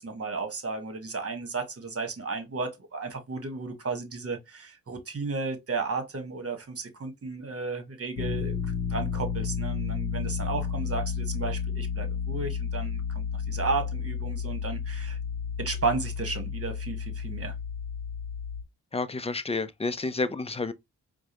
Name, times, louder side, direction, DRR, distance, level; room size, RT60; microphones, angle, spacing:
voice 1, 0.0-15.2 15.6-17.5, right 4 dB, 40° right, 1.4 m, -33 dB
sound 1, 8.2-18.6, left 6 dB, 75° left, 0.6 m, -32 dB
voice 2, 18.9-20.7, left 3 dB, 15° left, 0.6 m, -30 dB
4.6 x 2.2 x 2.9 m
supercardioid pair, 50°, 37 cm